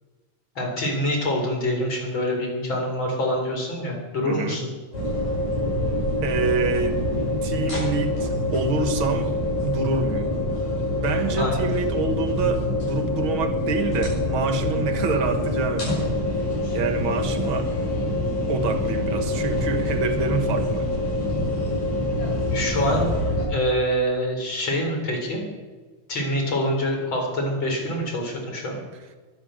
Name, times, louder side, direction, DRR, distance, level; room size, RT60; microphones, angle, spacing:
voice 1, 0.6-4.7 11.4-11.7 22.5-23.1 23.5-25.4 26.1-28.8, equal, 40° left, 1 dB, 4.7 m, -25 dB
voice 2, 4.3-4.6 6.2-7.0 7.4-9.3 9.6-10.3 10.9-16.1 16.7-17.7 18.5-20.9, right 4 dB, 50° right, 8 dB, 1.9 m, -27 dB
sound 1, 4.9-23.4, left 1 dB, 70° left, 8.6 m, -25 dB
23.0 x 9.5 x 6.4 m, 1.3 s
omnidirectional pair, 3.3 m